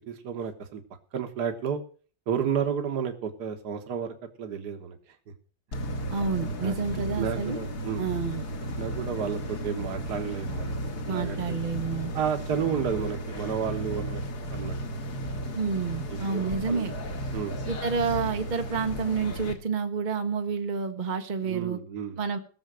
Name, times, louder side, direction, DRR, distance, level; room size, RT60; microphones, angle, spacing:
voice 1, 0.1-0.8 1.1-1.8 2.3-5.0 6.6-8.0 8.8-10.8 11.1-11.6 12.1-14.2 14.5-14.8 16.3-16.9 17.3-17.6 21.4-22.2, right 7 dB, 65° right, 6 dB, 1.8 m, -31 dB
sound 1, 5.7-19.5, equal, 60° left, 2.2 m, -34 dB
voice 2, 6.1-7.6 8.0-8.5 11.1-12.1 15.5-17.0 17.7-21.8 22.2-22.4, right 5 dB, 35° right, 6 dB, 0.9 m, -29 dB
18.0 x 7.2 x 6.3 m, 0.41 s
omnidirectional pair, 2.0 m